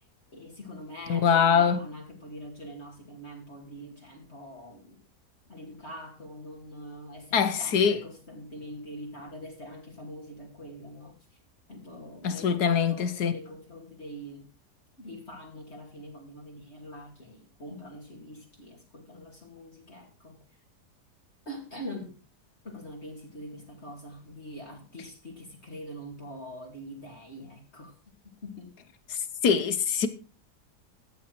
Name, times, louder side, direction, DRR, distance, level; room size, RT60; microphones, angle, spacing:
voice 1, 0.3-5.0 5.5-11.4 11.7-14.5 15.0-20.4 21.5-22.2 22.6-28.0 28.2-28.7, equal, 40° left, 2.8 m, -44 dB
voice 2, 1.1-1.8 7.3-8.0 12.2-13.3 29.1-30.1, left 7 dB, 70° left, 1.7 m, -23 dB
14.0 x 8.8 x 4.6 m
omnidirectional pair, 1.8 m